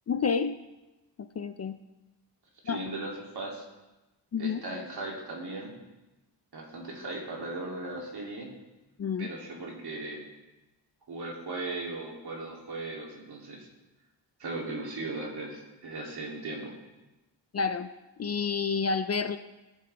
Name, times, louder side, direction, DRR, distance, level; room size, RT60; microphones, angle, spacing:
voice 1, 0.1-0.5 1.4-1.8 2.7-2.8 4.3-4.6 9.0-9.3 17.5-17.9 18.2-19.4, left 5 dB, 35° left, 10 dB, 0.4 m, -29 dB
voice 2, 2.6-3.6 4.4-5.7 6.5-8.5 9.2-10.3 11.1-13.7 14.4-16.7, right 2 dB, 60° right, -2 dB, 3.0 m, -37 dB
18.0 x 7.7 x 3.4 m, 1.1 s
wide cardioid pair, 130°, 44 cm